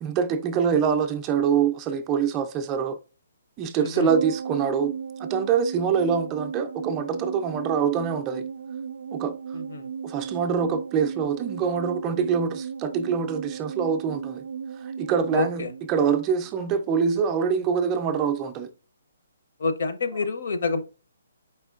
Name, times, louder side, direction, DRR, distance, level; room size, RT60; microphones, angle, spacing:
voice 1, 0.0-3.0 3.6-4.9 5.2-8.4 9.1-9.4 10.0-14.4 14.8-18.7, right 7 dB, 20° right, 0.4 m, -25 dB
sound 1, 4.1-16.6 16.9-17.0, right 6 dB, 90° right, 0.4 m, -35 dB
voice 2, 15.3-15.7 19.6-20.8, left 3 dB, 60° left, 0.7 m, -27 dB
4.4 x 4.1 x 2.4 m
hypercardioid pair, 160°, 0 cm